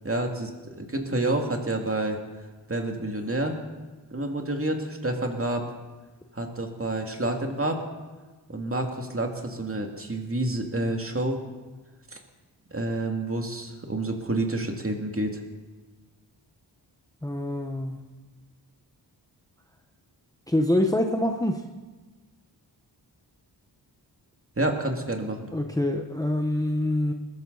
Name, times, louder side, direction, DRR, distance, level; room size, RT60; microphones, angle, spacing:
voice 1, 0.0-2.2 2.7-3.6 4.1-5.7 6.3-7.8 8.5-11.4 12.1-12.2 12.7-15.4 24.6-25.5, right 1 dB, 30° right, 3 dB, 2.4 m, -28 dB
voice 2, 17.2-18.0 20.5-21.6 25.5-27.1, left 1 dB, 10° left, 4 dB, 1.1 m, -25 dB
20.5 x 13.5 x 4.1 m, 1.3 s
cardioid pair, 60°, 42 cm